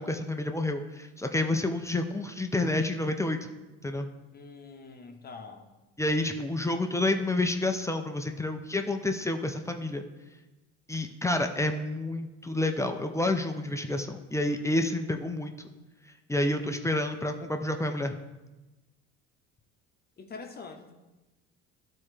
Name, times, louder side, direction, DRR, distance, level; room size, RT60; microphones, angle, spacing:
voice 1, 0.0-3.5 3.8-4.1 6.0-10.0 10.9-15.5 16.3-18.2, left 2 dB, 10° left, 5 dB, 0.6 m, -29 dB
voice 2, 4.3-5.7 20.2-20.9, left 4 dB, 30° left, 4 dB, 1.0 m, -44 dB
12.0 x 4.3 x 3.3 m, 1.1 s
supercardioid pair, 80°, 33 cm